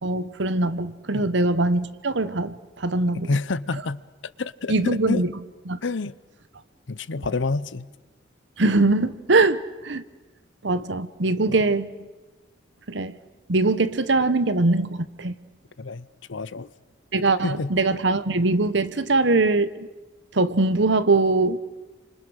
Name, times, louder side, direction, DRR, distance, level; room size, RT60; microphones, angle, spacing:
voice 1, 0.0-3.3 4.7-5.3 5.7-5.8 8.6-10.0 10.6-11.9 12.9-13.1 13.5-15.3 17.1-19.9 20.3-21.6, right 2 dB, 70° right, 1.1 m, -22 dB
voice 2, 3.1-4.0 4.4-5.2 5.8-6.1 6.9-7.9 11.5-11.6 15.8-16.7 17.4-17.7, left 3 dB, 80° left, 0.8 m, -28 dB
29.5 x 26.0 x 6.5 m
head